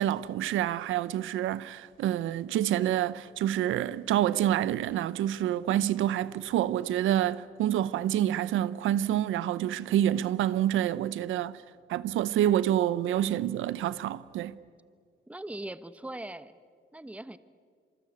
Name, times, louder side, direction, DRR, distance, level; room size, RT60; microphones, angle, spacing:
voice 1, 0.0-11.5 11.9-14.5, right 11 dB, 80° right, 0.8 m, -27 dB
voice 2, 15.3-16.5 16.9-17.4, right 1 dB, 5° right, 1.0 m, -40 dB
26.5 x 24.5 x 8.7 m
cardioid pair, 90°, 20 cm